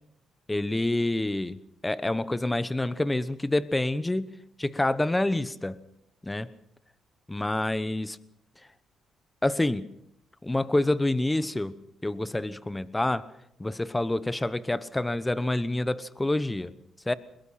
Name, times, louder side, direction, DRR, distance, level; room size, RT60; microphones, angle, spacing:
voice 1, 0.5-4.3 4.6-5.8 6.2-6.5 7.3-8.2 9.4-9.9 10.4-13.3 13.6-16.7 17.1-17.2, left 1 dB, 15° left, 15 dB, 1.1 m, -27 dB
22.0 x 22.0 x 5.8 m, 0.77 s
cardioid pair, 90°, 0 cm